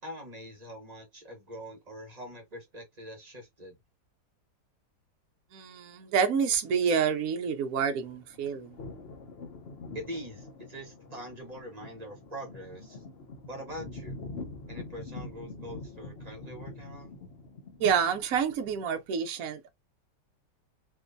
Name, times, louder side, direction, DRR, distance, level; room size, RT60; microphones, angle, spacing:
voice 1, 0.0-3.8 9.9-13.0 13.5-14.2 14.7-17.2, equal, 25° right, 1.0 m, -43 dB
voice 2, 5.5-8.8 17.8-19.7, right 7 dB, 65° right, 1.0 m, -28 dB
sound 1, 7.9-18.2, left 3 dB, 70° left, 0.6 m, -45 dB
3.7 x 2.6 x 2.5 m
omnidirectional pair, 1.9 m